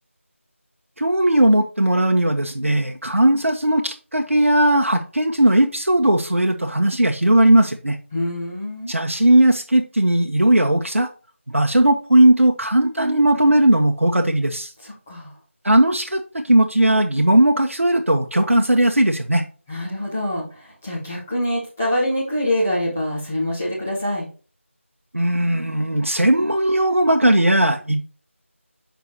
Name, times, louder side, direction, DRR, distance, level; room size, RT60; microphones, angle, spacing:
voice 1, 1.0-8.0 8.9-11.1 11.5-14.7 15.6-19.4 25.1-28.1, right 1 dB, 75° right, 3 dB, 0.8 m, -17 dB
voice 2, 8.1-8.9 14.8-15.3 19.7-24.3, left 1 dB, 5° left, -7 dB, 0.7 m, -25 dB
6.9 x 5.0 x 2.9 m, 0.36 s
figure-of-eight pair, 170°, 7 cm